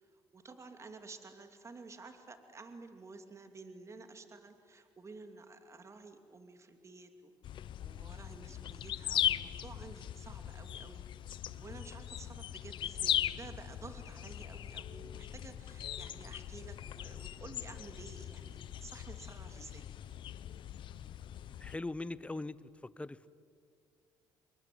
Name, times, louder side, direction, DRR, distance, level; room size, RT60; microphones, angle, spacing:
voice 1, 0.0-7.3 7.8-11.0 11.5-19.9, right 3 dB, 30° right, 7 dB, 2.7 m, -52 dB
sound 1, 7.4-21.8, left 11 dB, 60° left, 0.8 m, -39 dB
voice 2, 21.6-23.3, left 2 dB, 15° left, 18 dB, 0.9 m, -41 dB
27.0 x 22.5 x 9.4 m, 2.2 s
supercardioid pair, 80°, 9 cm